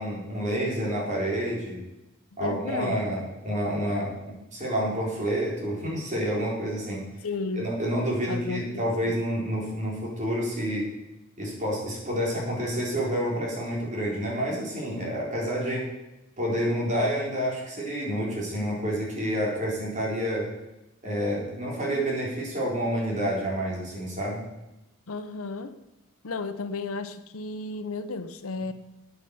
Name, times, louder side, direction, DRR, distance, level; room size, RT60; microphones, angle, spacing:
voice 1, 0.0-1.8 2.4-7.0 7.6-10.9 11.4-15.9 16.4-20.5 21.0-24.4, equal, 35° right, -4 dB, 4.1 m, -29 dB
voice 2, 2.4-3.0 7.2-7.7 8.3-8.8 25.1-25.7 26.2-28.7, left 3 dB, 90° left, 11 dB, 0.8 m, -33 dB
9.0 x 9.0 x 7.0 m, 0.97 s
head